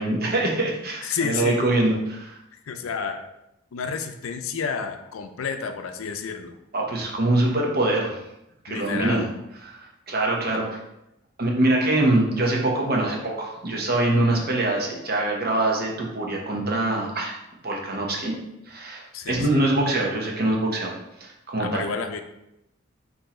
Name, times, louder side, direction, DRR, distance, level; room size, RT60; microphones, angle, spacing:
voice 1, 0.0-2.4 6.7-8.2 8.6-9.2 9.6-9.7 10.1-10.6 11.4-17.3 17.6-18.3 18.7-19.0 19.3-20.9 21.2-21.9, right 2 dB, 45° right, -1 dB, 0.9 m, -23 dB
voice 2, 1.0-1.6 2.7-3.3 3.7-6.5 8.7-9.3 10.5-10.6 19.1-19.6 21.6-22.2, left 5 dB, 80° left, 7 dB, 0.4 m, -30 dB
4.5 x 2.8 x 4.2 m, 0.88 s
head